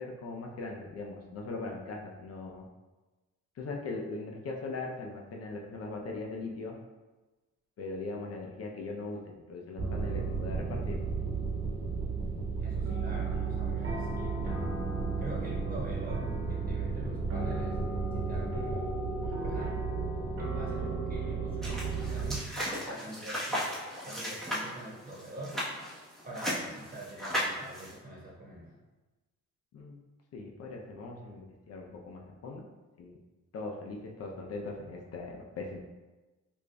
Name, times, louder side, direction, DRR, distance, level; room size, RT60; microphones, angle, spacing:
voice 1, 0.0-2.6 3.6-6.8 7.8-9.2 9.5-11.0 29.7-30.0 30.3-32.6 33.0-33.2 33.5-35.8, left 3 dB, 55° left, 1 dB, 0.6 m, -40 dB
sound 1, 9.8-22.4, right 4 dB, 45° right, 1.1 m, -33 dB
voice 2, 12.6-14.5 15.2-17.8 18.1-19.9 20.4-23.7 24.0-25.6 26.2-28.7, right 1 dB, 30° right, -4 dB, 1.3 m, -45 dB
sound 2, 21.6-27.9, equal, ahead, 1.1 m, -36 dB
4.8 x 2.6 x 2.3 m, 1.2 s
cardioid pair, 90°, 30 cm